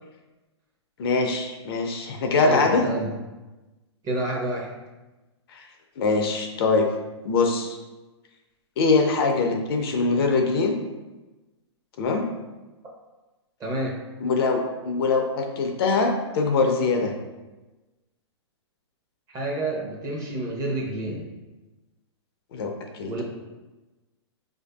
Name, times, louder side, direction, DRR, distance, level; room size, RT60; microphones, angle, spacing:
voice 1, 1.0-2.9 5.5-5.6 6.0-6.9 7.2-7.8 8.8-10.8 12.0-12.3 14.2-17.1 22.5-23.2, left 3 dB, 55° left, 3 dB, 0.5 m, -23 dB
voice 2, 2.3-3.1 4.0-4.7 13.6-13.9 19.3-21.3 23.0-23.2, right 1 dB, 25° right, -3 dB, 0.7 m, -29 dB
4.4 x 2.6 x 2.2 m, 1.1 s
hypercardioid pair, 125°, 15 cm